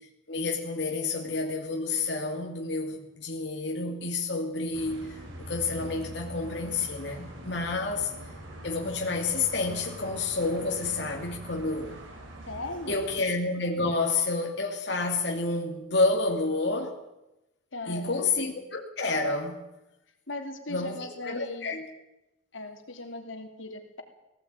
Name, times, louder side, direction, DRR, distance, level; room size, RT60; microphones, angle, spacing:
voice 1, 0.3-8.1 8.6-12.0 12.9-17.0 17.9-19.6 20.7-21.9, left 3 dB, 60° left, 2.5 m, -29 dB
sound 1, 4.7-13.2, equal, 85° right, 5.6 m, -43 dB
voice 2, 12.5-13.2 17.7-18.5 20.3-21.7 22.5-24.0, left 2 dB, 85° left, 3.1 m, -38 dB
19.0 x 16.5 x 9.0 m
head